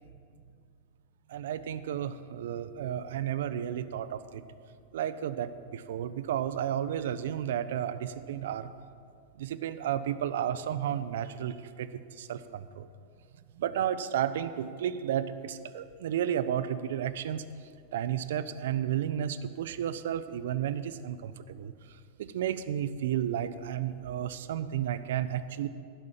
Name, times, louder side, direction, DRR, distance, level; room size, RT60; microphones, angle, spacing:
voice 1, 1.3-4.4 4.9-8.7 9.4-11.9 12.2-12.9 13.6-17.4 17.9-21.7 22.2-25.7, right 10 dB, 60° right, 13 dB, 0.5 m, -32 dB
11.0 x 6.2 x 7.4 m, 2.3 s
figure-of-eight pair, 90°, 0 cm